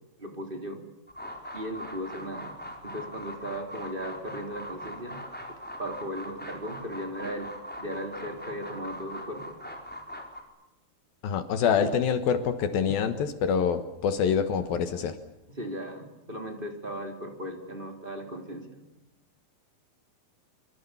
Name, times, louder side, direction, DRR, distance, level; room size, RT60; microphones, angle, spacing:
voice 1, 0.2-0.8 1.5-2.5 2.8-5.2 5.8-7.5 7.8-9.5 11.8-12.0 15.6-18.8, equal, 15° right, 4 dB, 3.8 m, -37 dB
sound 1, 1.1-10.4, equal, ahead, 4.4 m, -41 dB
voice 2, 11.2-15.2, left 7 dB, 70° left, 9 dB, 3.1 m, -26 dB
25.5 x 25.5 x 7.1 m, 0.98 s
omnidirectional pair, 4.5 m